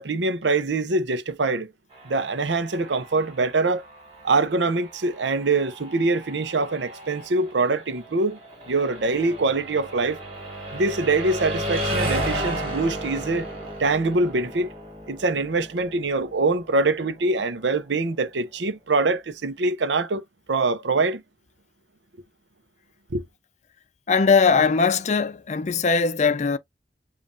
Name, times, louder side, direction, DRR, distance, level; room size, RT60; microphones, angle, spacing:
voice 1, 0.0-1.7 2.0-3.8 4.2-8.4 8.7-10.2 10.7-13.5 13.8-14.7 15.1-20.2 20.5-21.2 23.1-23.2, right 3 dB, 90° right, 0.7 m, -24 dB
sound 1, 1.9-17.7, equal, 30° right, 2.5 m, -34 dB
voice 2, 24.1-26.6, left 5 dB, 40° left, 0.4 m, -20 dB
7.2 x 2.5 x 2.5 m
head